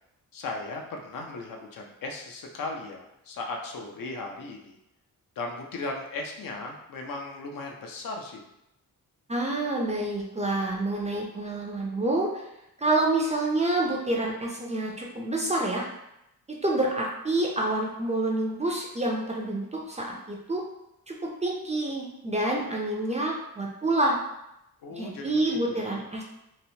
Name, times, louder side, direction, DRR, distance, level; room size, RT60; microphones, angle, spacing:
voice 1, 0.3-4.8 5.4-8.4 24.8-25.9, left 3 dB, 70° left, 2 dB, 0.5 m, -37 dB
voice 2, 9.3-12.4 12.8-15.9 16.5-20.6 21.1-24.2 24.9-26.2, right 2 dB, 20° right, -2 dB, 0.4 m, -28 dB
2.9 x 2.0 x 2.7 m, 0.86 s
wide cardioid pair, 115°, 35 cm